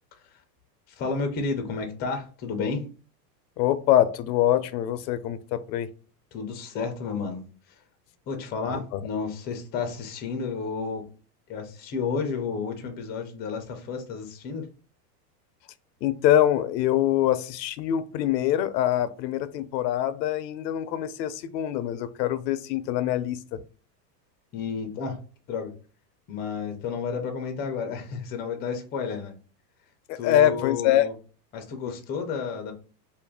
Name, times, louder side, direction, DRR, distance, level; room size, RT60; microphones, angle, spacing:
voice 1, 1.0-2.9 6.3-7.4 8.3-11.1 11.5-14.7 24.5-25.2 25.5-25.7 26.3-29.3 30.2-31.1 31.5-32.7, left 5 dB, 20° left, 0.4 m, -31 dB
voice 2, 3.6-5.9 8.7-9.0 16.0-23.4 30.1-31.1, left 12 dB, 80° left, 0.6 m, -24 dB
2.6 x 2.5 x 3.6 m
supercardioid pair, 130°, 50 cm